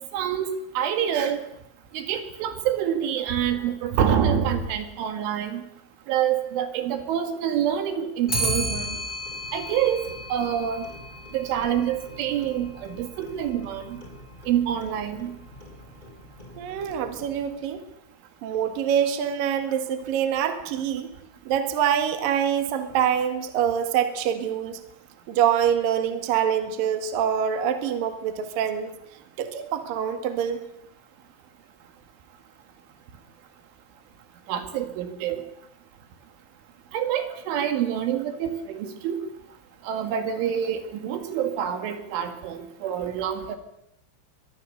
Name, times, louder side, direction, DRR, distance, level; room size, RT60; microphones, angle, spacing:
voice 1, 0.1-0.5 0.8-1.4 1.9-5.6 6.1-9.0 9.5-10.9 11.3-14.0 14.5-15.3 34.5-35.4 36.9-39.2 39.8-43.6, right 9 dB, 70° right, 7 dB, 4.2 m, -26 dB
Clock, 8.3-17.6, right 1 dB, 10° left, 2.8 m, -35 dB
voice 2, 16.6-17.8 18.4-21.1 21.5-24.8 25.3-28.9 29.4-30.6, right 9 dB, 55° right, 7 dB, 2.9 m, -25 dB
24.0 x 21.5 x 6.8 m, 0.80 s
omnidirectional pair, 5.8 m